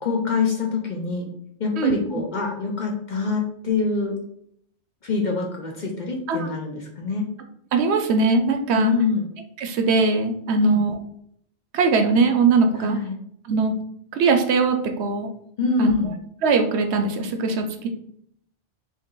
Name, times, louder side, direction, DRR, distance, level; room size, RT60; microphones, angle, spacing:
voice 1, 0.0-1.3 1.6-4.2 5.0-7.3 8.7-9.3 10.6-10.8 12.8-13.2 15.6-16.2, left 4 dB, 50° left, 1 dB, 0.6 m, -25 dB
voice 2, 7.7-8.9 9.6-10.9 11.7-13.0 13.5-13.7 14.1-15.3 15.8-15.9 16.4-17.9, right 4 dB, 70° right, 5 dB, 0.8 m, -21 dB
3.2 x 2.7 x 3.7 m, 0.68 s
omnidirectional pair, 1.2 m